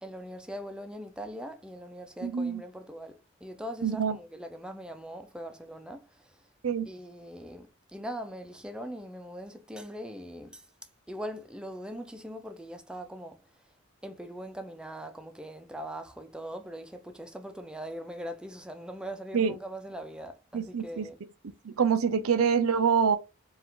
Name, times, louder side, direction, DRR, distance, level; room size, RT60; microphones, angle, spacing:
voice 1, 0.0-6.3 6.9-10.7 11.1-13.4 14.0-21.2, equal, 5° right, 0.5 m, -41 dB
voice 2, 2.2-2.6 3.8-4.2 6.6-6.9 19.3-19.5 20.5-21.1 21.7-23.2, right 6 dB, 80° right, 0.5 m, -25 dB
4.5 x 2.5 x 3.7 m
head